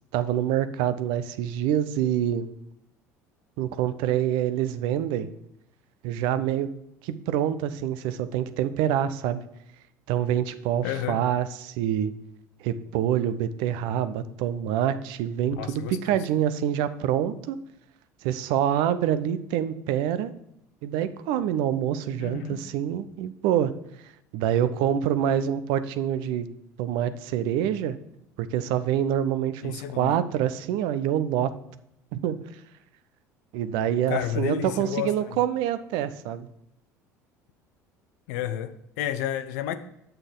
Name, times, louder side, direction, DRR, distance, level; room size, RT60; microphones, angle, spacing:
voice 1, 0.1-2.5 3.6-5.3 6.0-6.7 7.0-9.4 10.1-12.1 12.6-17.6 18.2-20.3 20.8-23.7 24.3-26.5 26.8-28.0 28.4-31.5 32.1-32.4 33.5-36.5, right 10 dB, 65° right, 13 dB, 0.6 m, -26 dB
voice 2, 10.8-11.2 15.6-16.3 22.2-22.6 29.6-30.2 34.1-35.4 38.3-39.7, left 10 dB, 70° left, 11 dB, 0.7 m, -31 dB
7.9 x 6.8 x 3.8 m, 0.78 s
hypercardioid pair, 65°, 9 cm